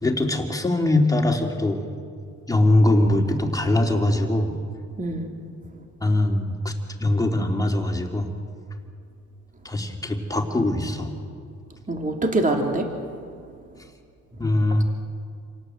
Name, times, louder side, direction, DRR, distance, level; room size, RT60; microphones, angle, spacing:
voice 1, 0.0-1.8 2.5-4.6 6.0-6.7 7.0-8.3 9.6-11.1 14.4-14.8, left 1 dB, 10° left, 2 dB, 3.1 m, -22 dB
voice 2, 5.0-5.3 11.9-12.9, right 2 dB, 25° right, 3 dB, 2.9 m, -24 dB
28.0 x 18.0 x 8.0 m, 2.3 s
cardioid pair, 90°, 30 cm